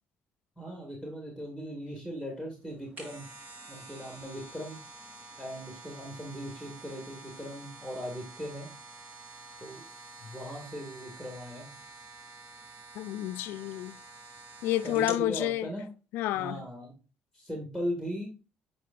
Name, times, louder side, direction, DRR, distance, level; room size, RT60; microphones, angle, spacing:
voice 1, 0.6-3.3 3.7-4.8 5.4-8.7 9.6-9.8 10.2-11.7 14.8-15.9 16.4-16.9 17.3-18.3, equal, 10° right, 1.9 m, -38 dB
sound 1, 2.7-15.3 15.7-15.8, right 3 dB, 50° right, 3.7 m, -48 dB
voice 2, 13.0-14.0 14.6-15.7 16.1-16.6, left 14 dB, 85° left, 0.3 m, -30 dB
9.1 x 4.4 x 2.5 m
supercardioid pair, 70°, 4 cm